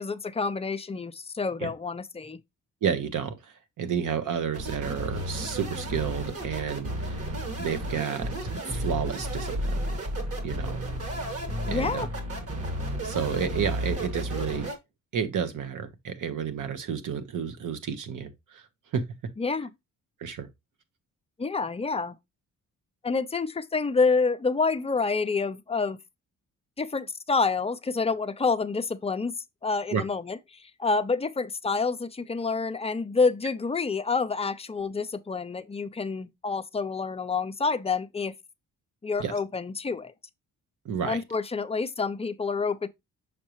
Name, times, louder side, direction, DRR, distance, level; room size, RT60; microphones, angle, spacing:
voice 1, 0.0-2.4 11.7-12.1 19.4-19.7 21.4-22.2 23.0-26.0 26.8-29.3 29.6-38.3 39.0-40.1 41.0-42.9, left 4 dB, 20° left, 0.6 m, -28 dB
voice 2, 2.8-3.3 3.8-6.9 7.6-8.3 8.6-9.9 10.4-10.8 11.7-12.1 13.0-14.7 15.1-18.6 18.9-19.0 20.2-20.5 29.9-30.0 39.2-39.3 40.8-41.2, right 7 dB, 65° right, 1.2 m, -30 dB
sound 1, 4.5-14.8, right 1 dB, 45° right, 2.1 m, -32 dB
6.5 x 5.1 x 3.1 m
cardioid pair, 80°, 33 cm